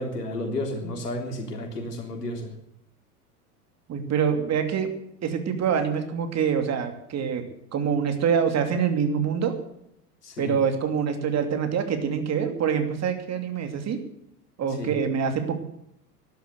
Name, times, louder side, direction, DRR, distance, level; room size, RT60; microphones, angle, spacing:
voice 1, 0.0-2.5 10.2-10.6 14.8-14.9, left 1 dB, 85° left, 3 dB, 3.7 m, -32 dB
voice 2, 3.9-4.9 5.2-9.5 10.4-14.0 14.6-15.5, right 7 dB, 35° right, 7 dB, 2.8 m, -25 dB
13.0 x 11.5 x 8.1 m, 0.76 s
hypercardioid pair, 90°, 46 cm